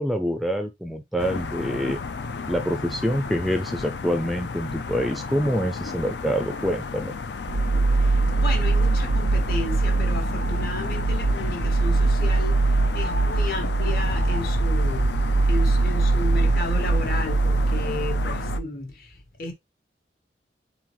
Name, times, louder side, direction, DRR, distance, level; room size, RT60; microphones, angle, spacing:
voice 1, 0.0-2.0 2.5-7.1, equal, ahead, 0.4 m, -26 dB
sound 1, 1.2-18.6, left 4 dB, 75° left, 0.5 m, -32 dB
sound 2, 7.5-18.6, right 3 dB, 80° right, 0.4 m, -22 dB
voice 2, 8.0-15.1 15.5-19.5, left 2 dB, 55° left, 1.3 m, -33 dB
4.2 x 3.9 x 3.0 m
head